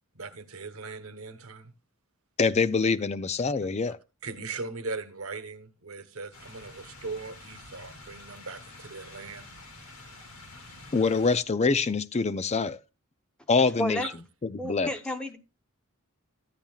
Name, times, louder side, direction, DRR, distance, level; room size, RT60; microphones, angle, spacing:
voice 1, 0.1-1.7 4.2-9.5 14.0-14.1, right 4 dB, 75° right, 1.1 m, -39 dB
voice 2, 2.4-4.0 10.9-12.8 13.5-14.1 14.4-14.9, left 4 dB, 30° left, 0.5 m, -25 dB
sound 1, 6.3-11.4, left 2 dB, 85° left, 3.0 m, -48 dB
voice 3, 13.8-14.1 14.6-15.4, equal, 5° left, 0.9 m, -31 dB
13.0 x 8.9 x 2.4 m
head